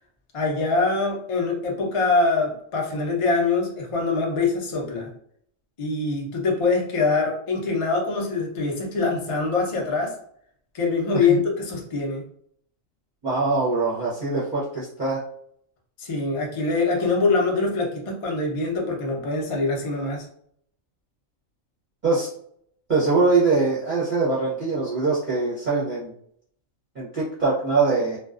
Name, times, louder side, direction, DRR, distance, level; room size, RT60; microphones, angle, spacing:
voice 1, 0.3-5.1 5.8-10.2 10.7-12.2 16.0-20.3, left 3 dB, 50° left, -1 dB, 0.3 m, -24 dB
voice 2, 13.2-15.2 22.0-22.3 22.9-26.1 26.9-28.2, right 3 dB, 40° right, -9 dB, 0.7 m, -23 dB
2.4 x 2.2 x 2.4 m, 0.65 s
omnidirectional pair, 1.4 m